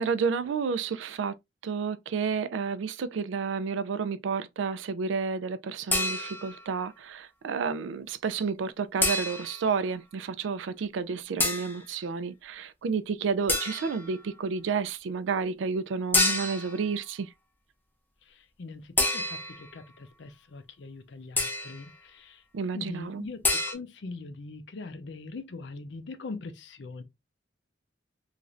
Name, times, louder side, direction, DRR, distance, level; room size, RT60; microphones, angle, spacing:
voice 1, 0.0-1.4 1.6-17.3 22.5-23.3, right 5 dB, 85° right, 0.4 m, -31 dB
sound 1, 5.9-6.6 9.0-9.6 11.4-11.8 13.5-14.0 16.1-16.8 19.0-19.7 21.4-21.8 23.4-23.7, left 2 dB, 10° left, 0.5 m, -27 dB
voice 2, 18.3-22.4 22.7-27.0, left 3 dB, 70° left, 0.5 m, -42 dB
3.0 x 2.5 x 2.4 m
head